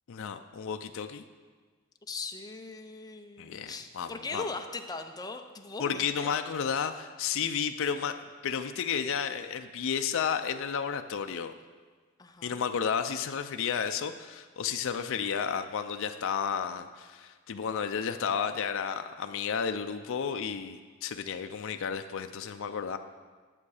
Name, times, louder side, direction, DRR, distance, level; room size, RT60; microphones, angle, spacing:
voice 1, 0.1-1.2 3.4-4.4 5.8-11.5 12.4-23.0, left 7 dB, 65° left, 7 dB, 0.4 m, -32 dB
voice 2, 2.1-6.3 12.2-12.6, left 3 dB, 20° left, 5 dB, 0.6 m, -40 dB
11.0 x 7.1 x 4.9 m, 1.5 s
head